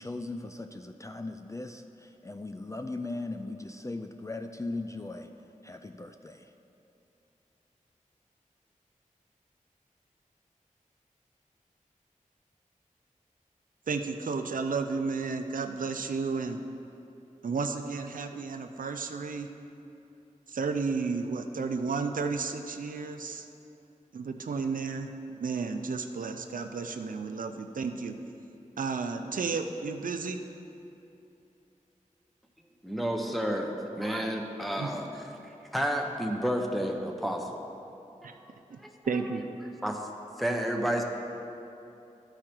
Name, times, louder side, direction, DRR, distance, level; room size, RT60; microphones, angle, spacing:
voice 1, 0.0-5.3 5.6-6.5, left 2 dB, 20° left, 6 dB, 0.4 m, -38 dB
voice 2, 13.9-16.6 17.4-19.5 20.5-23.5 24.1-28.2 28.8-30.4 34.8-34.9 38.2-38.3 38.7-38.8 39.1-39.4, right 4 dB, 80° right, 7 dB, 0.5 m, -32 dB
voice 3, 32.8-37.6 38.8-38.9 39.8-40.0 40.4-41.0, equal, ahead, 2 dB, 1.0 m, -31 dB
11.5 x 4.9 x 4.5 m, 2.8 s
cardioid pair, 40°, 14 cm